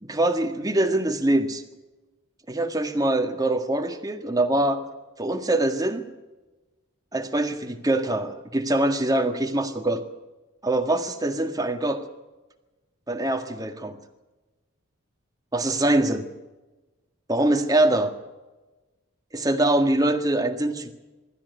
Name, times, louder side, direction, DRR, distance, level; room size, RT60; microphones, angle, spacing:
voice 1, 0.0-1.6 2.5-4.8 5.2-6.0 7.1-10.0 10.6-12.0 13.1-14.0 15.5-16.3 17.3-18.1 19.3-20.9, right 1 dB, 15° right, 6 dB, 1.7 m, -23 dB
24.0 x 13.5 x 9.5 m, 1.1 s
head